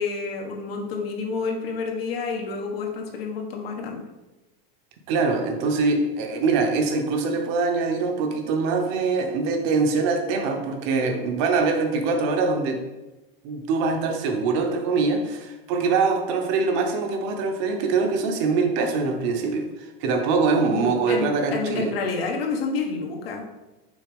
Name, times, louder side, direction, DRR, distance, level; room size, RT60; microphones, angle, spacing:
voice 1, 0.0-4.0 20.7-23.4, left 4 dB, 80° left, 1 dB, 1.5 m, -29 dB
voice 2, 5.1-12.8 13.4-21.9, right 4 dB, 30° right, 4 dB, 0.7 m, -23 dB
6.2 x 4.0 x 5.1 m, 1.1 s
supercardioid pair, 175°, 30 cm